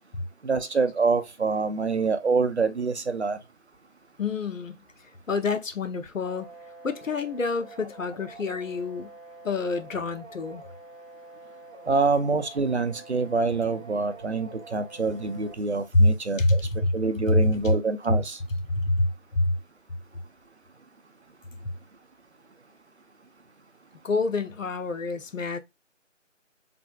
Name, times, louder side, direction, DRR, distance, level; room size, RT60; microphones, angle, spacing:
voice 1, 0.4-3.4 11.9-16.7 16.9-18.4, right 4 dB, 60° right, 0.6 m, -26 dB
voice 2, 4.2-4.8 5.3-6.5 6.8-9.1 9.4-10.6 15.9-16.1 16.4-16.9 17.3-17.7 18.7-19.6 24.0-25.6, left 2 dB, 85° left, 0.8 m, -26 dB
sound 1, 6.2-15.6, right 2 dB, 35° left, 2.1 m, -47 dB
3.3 x 2.5 x 2.2 m
figure-of-eight pair, 180°, 38 cm